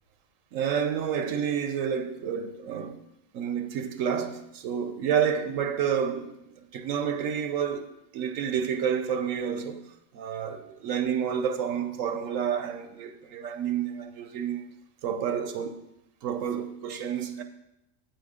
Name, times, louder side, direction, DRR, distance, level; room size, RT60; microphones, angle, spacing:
voice 1, 0.5-3.0 3.3-9.8 10.1-14.7 15.0-15.8 16.2-17.4, right 8 dB, 80° right, 1.0 m, -29 dB
8.9 x 7.7 x 3.6 m
omnidirectional pair, 1.4 m